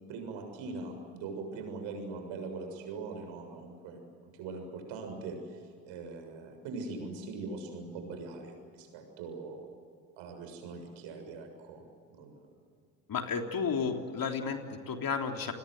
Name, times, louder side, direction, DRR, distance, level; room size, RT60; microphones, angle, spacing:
voice 1, 0.1-9.7 10.2-11.8 12.1-12.5, right 3 dB, 70° right, 5 dB, 7.0 m, -41 dB
voice 2, 13.1-15.5, left 5 dB, 45° left, 3 dB, 3.6 m, -32 dB
29.5 x 21.0 x 8.0 m, 2.3 s
hypercardioid pair, 60°, 49 cm